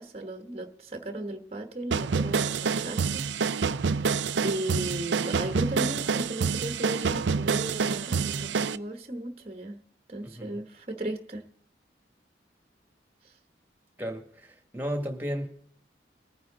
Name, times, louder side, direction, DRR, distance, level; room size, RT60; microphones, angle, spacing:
voice 1, 0.0-3.2 3.7-4.1 4.4-9.8 10.1-11.4 13.2-13.4, right 1 dB, 35° right, 6 dB, 1.1 m, -36 dB
sound 1, 1.9-8.8, right 5 dB, 85° right, 0.5 m, -27 dB
voice 2, 14.0-15.5, equal, 10° right, 5 dB, 1.9 m, -34 dB
20.5 x 9.3 x 3.9 m, 0.62 s
head